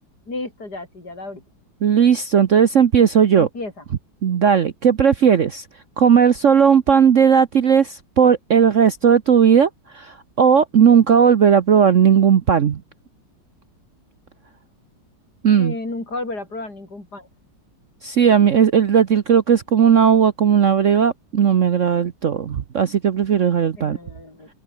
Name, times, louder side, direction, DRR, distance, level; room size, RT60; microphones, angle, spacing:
voice 1, 0.3-1.4 3.3-3.8 15.6-17.3 23.8-24.5, left 2 dB, 55° left, 6.6 m, -32 dB
voice 2, 1.8-3.5 4.2-5.6 6.0-12.8 15.4-15.7 18.0-24.0, right 7 dB, 50° right, 1.1 m, -16 dB
omnidirectional pair, 2.0 m